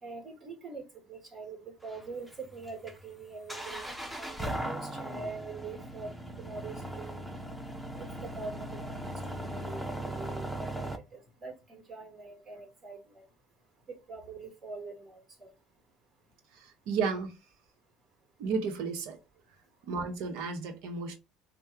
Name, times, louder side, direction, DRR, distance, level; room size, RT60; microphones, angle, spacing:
voice 1, 0.0-6.1 6.4-7.2 8.0-13.2 13.9-15.5, right 4 dB, 45° right, 1.6 m, -44 dB
sound 1, 1.8-11.0, right 1 dB, 5° right, 0.8 m, -39 dB
voice 2, 16.9-17.3 18.4-19.2 19.9-21.1, right 5 dB, 70° right, 1.0 m, -32 dB
3.4 x 2.3 x 4.3 m
supercardioid pair, 80°, 0 cm